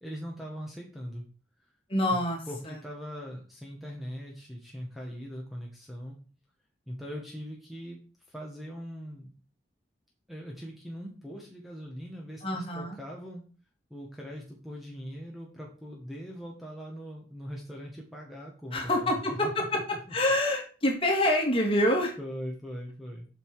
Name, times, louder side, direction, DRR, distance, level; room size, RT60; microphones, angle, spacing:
voice 1, 0.0-1.3 2.1-2.2 2.5-6.1 6.9-8.0 8.3-9.3 10.3-13.4 13.9-19.5 20.1-20.2 22.2-23.3, equal, ahead, -1 dB, 1.3 m, -41 dB
voice 2, 1.9-2.4 2.7-2.8 12.4-13.0 18.7-19.8 20.1-22.1, left 1 dB, 30° left, 1 dB, 2.1 m, -26 dB
7.9 x 5.8 x 4.7 m, 0.39 s
head